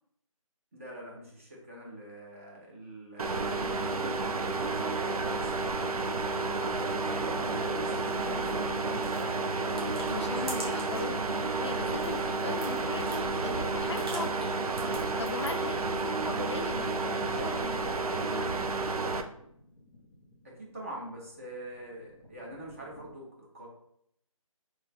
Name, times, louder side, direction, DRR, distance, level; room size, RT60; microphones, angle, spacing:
voice 1, 0.7-6.1 6.5-9.0 20.4-23.7, right 1 dB, 25° right, -3 dB, 0.7 m, -44 dB
sound 1, 3.2-19.2, right 3 dB, 85° right, 0.5 m, -31 dB
sound 2, 7.3-23.1, left 1 dB, 10° left, 0.9 m, -48 dB
sound 3, 8.1-11.2 11.5-15.7, right 1 dB, 45° right, 1.0 m, -46 dB
voice 2, 10.1-14.5 15.2-18.9, left 3 dB, 50° left, 5 dB, 0.4 m, -39 dB
3.2 x 2.9 x 3.3 m, 0.72 s
figure-of-eight pair, 165°, 18 cm